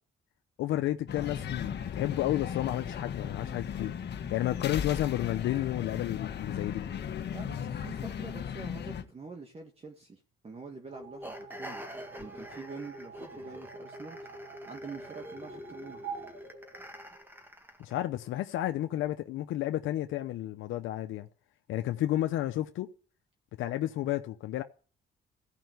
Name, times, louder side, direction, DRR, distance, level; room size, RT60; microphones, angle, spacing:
voice 1, 0.6-3.9 4.3-6.8 17.8-21.3 21.7-22.9 23.6-24.6, left 14 dB, 85° left, 0.8 m, -31 dB
sound 1, 1.1-9.0, left 8 dB, 60° left, 1.4 m, -36 dB
voice 2, 7.3-11.8 12.2-14.2 14.7-16.0, right 4 dB, 30° right, 1.8 m, -46 dB
sound 2, 10.9-17.4, right 2 dB, 85° right, 7.1 m, -45 dB
sound 3, 11.2-18.0, equal, 10° right, 1.9 m, -47 dB
15.0 x 5.7 x 9.4 m
cardioid pair, 90°, 20 cm